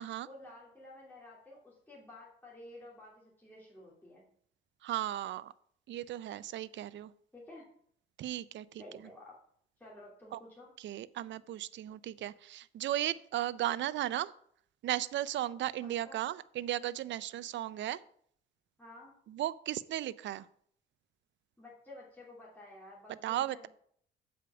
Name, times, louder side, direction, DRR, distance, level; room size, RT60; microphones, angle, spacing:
voice 1, 0.2-4.2 7.3-7.6 8.8-9.3 9.8-10.7 15.8-16.2 18.8-19.1 21.6-23.7, left 1 dB, 10° left, -5 dB, 2.8 m, -52 dB
voice 2, 4.8-5.5 5.9-7.1 8.2-8.8 10.3-10.4 10.8-14.3 14.8-18.0 19.3-20.5 23.2-23.7, right 13 dB, 70° right, 18 dB, 0.5 m, -36 dB
8.2 x 5.0 x 6.9 m, 0.63 s
cardioid pair, 90°, 20 cm